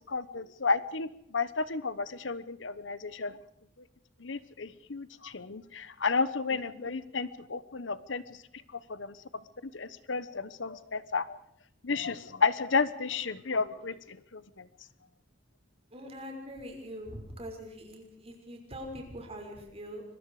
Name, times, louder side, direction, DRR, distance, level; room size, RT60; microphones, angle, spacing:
voice 1, 0.1-3.4 4.2-8.4 8.7-9.2 9.6-11.4 11.8-14.7, left 4 dB, 80° left, 15 dB, 1.1 m, -32 dB
voice 2, 15.9-20.0, equal, 30° right, 2 dB, 5.9 m, -43 dB
25.5 x 22.5 x 4.9 m, 0.74 s
head